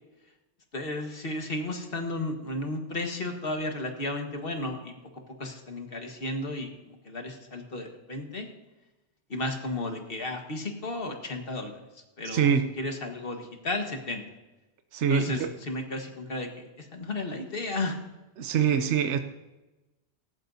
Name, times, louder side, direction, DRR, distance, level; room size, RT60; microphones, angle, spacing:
voice 1, 0.7-4.9 5.4-6.7 7.0-8.5 9.3-11.8 12.2-14.2 15.1-18.0, left 2 dB, 55° left, 4 dB, 1.6 m, -33 dB
voice 2, 12.2-12.7 14.9-15.5 18.4-19.2, right 7 dB, 80° right, 8 dB, 1.0 m, -24 dB
17.5 x 14.0 x 2.7 m, 1.1 s
omnidirectional pair, 1.2 m